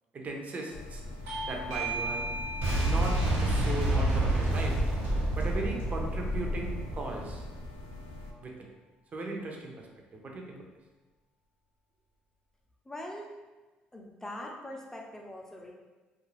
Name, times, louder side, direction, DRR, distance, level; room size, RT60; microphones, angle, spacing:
voice 1, 0.1-1.0 1.5-2.3 2.7-4.8 5.4-7.4 8.4-8.5 9.1-9.9 10.1-10.6, right 2 dB, 40° right, 1 dB, 0.6 m, -37 dB
sound 1, 0.7-8.3, left 2 dB, 80° left, 0.4 m, -42 dB
Bell / Doorbell, 1.3-6.4, right 2 dB, 85° right, 0.5 m, -40 dB
Boom, 2.6-7.5, right 1 dB, 65° right, 1.1 m, -28 dB
voice 2, 12.9-13.3 13.9-15.7, left 1 dB, 10° left, 0 dB, 0.6 m, -42 dB
2.5 x 2.3 x 3.1 m, 1.2 s
supercardioid pair, 70°, 4 cm